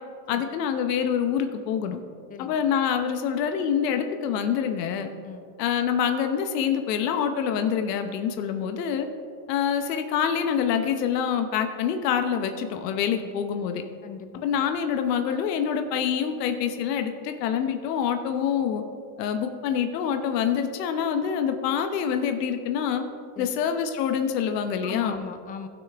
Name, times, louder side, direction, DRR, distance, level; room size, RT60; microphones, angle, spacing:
voice 1, 0.3-2.0 2.4-5.1 5.6-9.1 9.5-13.8 14.4-18.8 19.2-23.0 23.4-25.1, left 8 dB, 90° left, 7 dB, 0.9 m, -26 dB
voice 2, 14.0-14.5 23.4-23.6 24.8-25.7, left 6 dB, 20° left, 9 dB, 0.4 m, -39 dB
15.5 x 6.2 x 3.5 m, 2.3 s
supercardioid pair, 135°, 47 cm